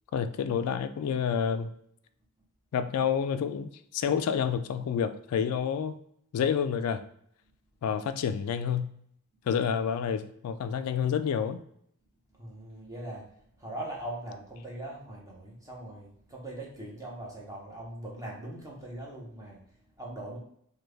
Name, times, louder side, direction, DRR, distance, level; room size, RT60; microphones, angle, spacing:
voice 1, 0.1-1.7 2.7-6.0 6.3-7.0 7.8-8.9 9.5-11.6, left 7 dB, 90° left, 14 dB, 0.3 m, -29 dB
voice 2, 12.3-20.4, right 1 dB, 15° right, -3 dB, 0.9 m, -41 dB
3.3 x 2.3 x 3.2 m, 0.69 s
head